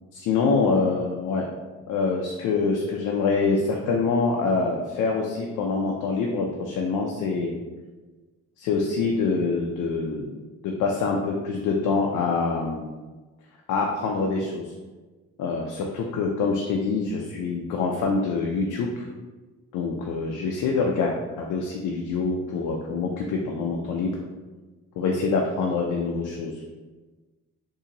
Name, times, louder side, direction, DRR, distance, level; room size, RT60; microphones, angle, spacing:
voice 1, 0.1-1.5 1.9-7.5 8.6-10.4 10.6-12.9 13.7-14.6 15.4-19.0 19.7-24.1 25.0-26.5, left 4 dB, 85° left, 0 dB, 0.5 m, -25 dB
3.9 x 2.7 x 2.8 m, 1.3 s
cardioid pair, 90°, 30 cm